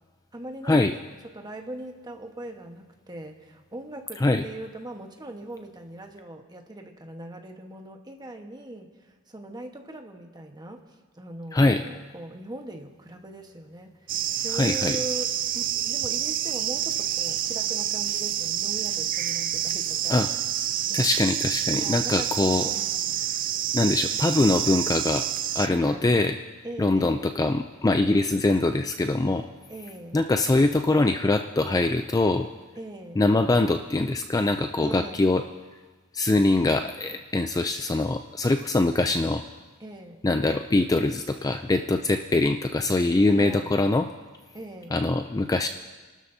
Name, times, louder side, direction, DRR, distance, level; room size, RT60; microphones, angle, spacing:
voice 1, 0.3-0.9 1.3-20.4 20.9-21.1 21.8-22.3 22.6-23.2 25.6-26.1 26.6-27.3 29.7-30.2 32.7-33.2 34.8-35.2 39.8-40.2 43.4-43.7 44.5-44.9, right 1 dB, 20° right, 3 dB, 1.2 m, -40 dB
voice 2, 11.5-11.8 14.5-15.0 20.1-20.3 20.9-22.7 23.7-25.3 25.5-26.4 26.8-29.4 30.1-32.5 33.2-35.4 36.1-39.4 40.2-44.1 44.9-45.7, left 2 dB, 15° left, 7 dB, 0.4 m, -23 dB
sound 1, 14.1-25.7, right 11 dB, 40° right, 0.4 m, -28 dB
29.0 x 12.5 x 2.8 m, 1.3 s
head